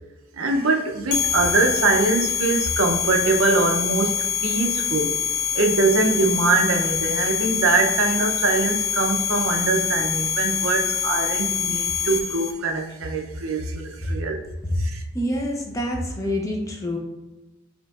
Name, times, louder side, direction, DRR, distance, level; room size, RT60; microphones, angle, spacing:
voice 1, 0.3-5.1 5.5-14.4 14.7-15.0, right 3 dB, 80° right, 3 dB, 0.6 m, -23 dB
sound 1, 1.1-12.5, left 8 dB, 60° left, 0.7 m, -25 dB
voice 2, 15.1-17.0, equal, 15° left, 1 dB, 0.5 m, -26 dB
5.2 x 2.9 x 2.3 m, 1.1 s
head